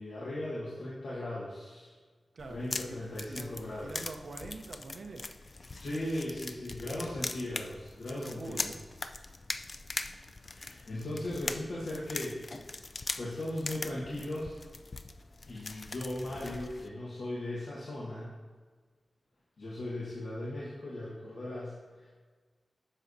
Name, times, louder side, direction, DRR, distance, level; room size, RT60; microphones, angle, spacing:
voice 1, 0.0-1.9 2.5-3.9 5.8-8.8 10.5-12.4 13.2-14.6 15.5-18.3 19.6-22.1, left 1 dB, 85° left, -8 dB, 1.5 m, -38 dB
voice 2, 2.3-3.0 3.3-3.5 3.8-5.3 6.9-7.0 8.1-8.8, right 3 dB, 75° right, 3 dB, 0.8 m, -45 dB
sound 1, 2.4-16.9, left 3 dB, 45° left, 0.4 m, -41 dB
10.0 x 6.3 x 2.8 m, 1.5 s
wide cardioid pair, 85°, 0 cm